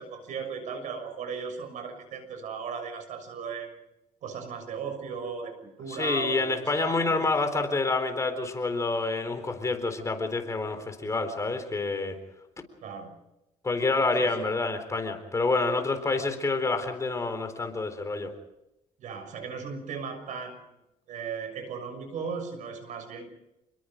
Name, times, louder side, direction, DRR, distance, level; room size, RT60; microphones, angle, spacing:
voice 1, 0.0-3.7 4.2-7.3 12.8-13.1 14.2-14.3 16.1-16.2 19.0-20.6 21.1-23.3, right 6 dB, 70° right, 8 dB, 6.5 m, -37 dB
voice 2, 5.9-12.2 13.6-18.3, left 3 dB, 25° left, 7 dB, 4.0 m, -28 dB
29.5 x 21.5 x 5.2 m, 0.90 s
cardioid pair, 125°, 13 cm